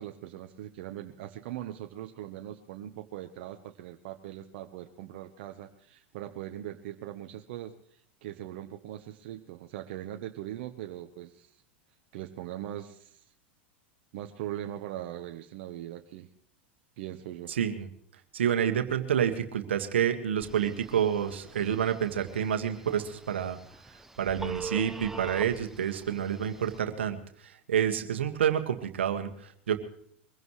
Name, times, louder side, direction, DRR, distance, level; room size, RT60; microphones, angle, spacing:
voice 1, 0.0-7.7 8.2-11.6 12.1-13.3 14.1-16.3 17.0-17.5, right 12 dB, 65° right, 5 dB, 1.1 m, -40 dB
voice 2, 17.5-17.9 18.3-23.6 24.2-27.2 27.4-29.8, right 9 dB, 90° right, 6 dB, 1.7 m, -28 dB
Telephone, 20.4-26.8, right 2 dB, 5° right, 0.8 m, -44 dB
23.5 x 16.0 x 3.2 m, 0.63 s
hypercardioid pair, 105°, 6 cm